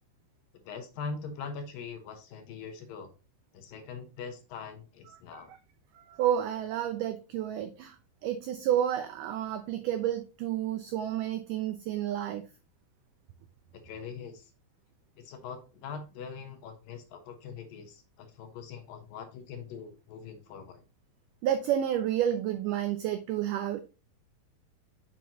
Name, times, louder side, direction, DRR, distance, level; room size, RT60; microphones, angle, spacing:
voice 1, 0.6-3.1 3.5-5.5 13.7-14.5 15.2-20.8, left 5 dB, 70° left, 2.6 m, -42 dB
voice 2, 6.0-12.4 21.4-23.8, right 10 dB, 85° right, 1.8 m, -30 dB
7.4 x 6.0 x 2.7 m
omnidirectional pair, 4.5 m